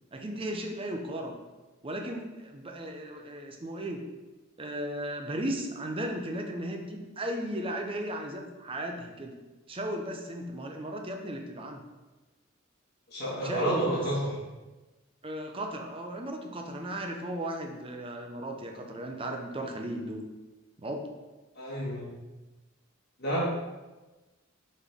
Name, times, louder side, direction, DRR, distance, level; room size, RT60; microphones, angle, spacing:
voice 1, 0.1-1.4 1.8-4.1 4.6-9.3 9.7-11.8 13.4-14.0 15.2-20.2 20.8-21.1, right 1 dB, 25° right, 3 dB, 0.7 m, -36 dB
voice 2, 13.1-14.4 21.6-22.1 23.2-23.4, right 1 dB, 55° left, -7 dB, 1.9 m, -30 dB
6.9 x 4.4 x 3.6 m, 1.2 s
head